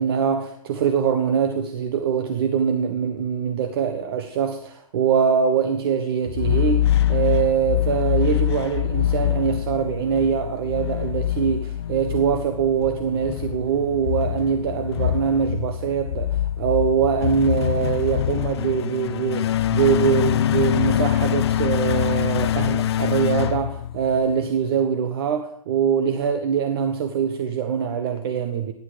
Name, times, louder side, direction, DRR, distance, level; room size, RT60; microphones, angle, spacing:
voice 1, 0.0-28.7, right 7 dB, 40° right, 1.2 m, -23 dB
sound 1, 6.3-24.4, left 11 dB, 45° left, 0.6 m, -24 dB
17.5 x 11.0 x 5.1 m
hypercardioid pair, 150°, 19 cm